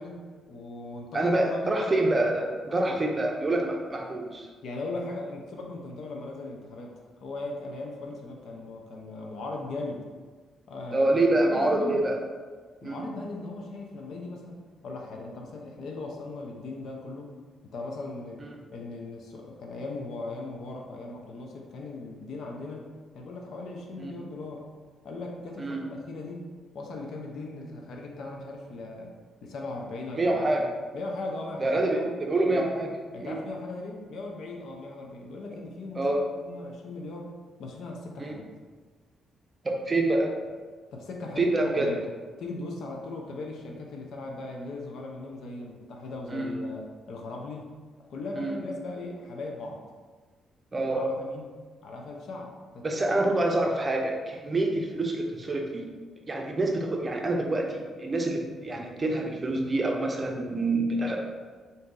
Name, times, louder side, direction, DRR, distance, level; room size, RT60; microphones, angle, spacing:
voice 1, 0.0-1.7 2.8-3.0 4.6-6.9 7.2-10.0 10.7-12.0 12.8-17.3 17.6-18.4 18.7-22.9 23.1-24.6 25.0-26.5 26.7-29.1 29.4-30.3 30.9-32.1 32.5-32.6 33.1-37.3 37.6-38.5 40.9-42.1 42.4-47.7 48.1-49.8 50.9-51.5 51.8-53.3, left 2 dB, 70° left, 0 dB, 0.7 m, -38 dB
voice 2, 1.1-4.5 10.9-12.2 12.8-13.0 18.4-18.5 24.0-24.1 25.6-25.8 30.2-30.7 31.6-32.9 33.2-33.4 35.9-36.2 38.2-38.4 39.6-40.3 41.4-41.9 46.3-46.5 48.3-48.6 50.7-51.1 52.8-55.9 56.3-61.2, right 2 dB, 30° right, 1 dB, 0.6 m, -26 dB
4.0 x 2.7 x 3.7 m, 1.5 s
cardioid pair, 100°, 0 cm